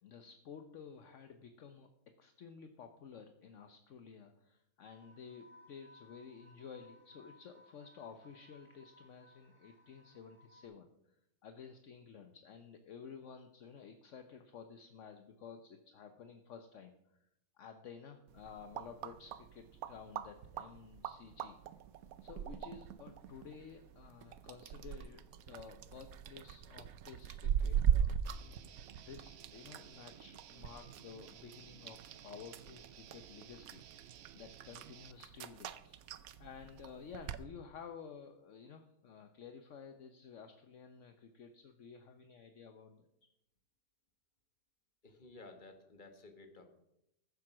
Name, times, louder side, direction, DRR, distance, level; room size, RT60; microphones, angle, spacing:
voice 1, 0.0-1.9 2.2-11.2 11.4-17.3 17.6-21.6 22.2-28.5 29.0-33.8 34.3-43.1, left 6 dB, 60° left, 6 dB, 1.1 m, -53 dB
sound 1, 4.8-10.6, left 1 dB, 10° right, 2.4 m, -63 dB
sound 2, 18.3-37.4, right 8 dB, 80° right, 1.1 m, -40 dB
Guitar, 28.3-35.1, right 10 dB, 65° right, 0.7 m, -56 dB
voice 2, 45.0-46.7, left 2 dB, 35° left, 5 dB, 1.7 m, -55 dB
14.5 x 7.6 x 6.1 m, 0.82 s
omnidirectional pair, 1.5 m